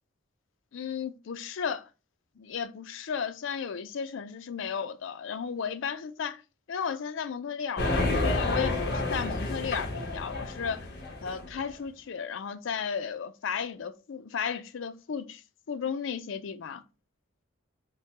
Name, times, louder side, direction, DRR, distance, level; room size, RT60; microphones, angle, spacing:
voice 1, 0.7-1.9 2.4-6.4 6.7-10.9 11.2-15.4 15.7-16.8, left 6 dB, 75° left, 0.4 m, -34 dB
sound 1, 7.8-11.6, left 2 dB, 50° left, 1.0 m, -30 dB
3.3 x 2.1 x 4.3 m
head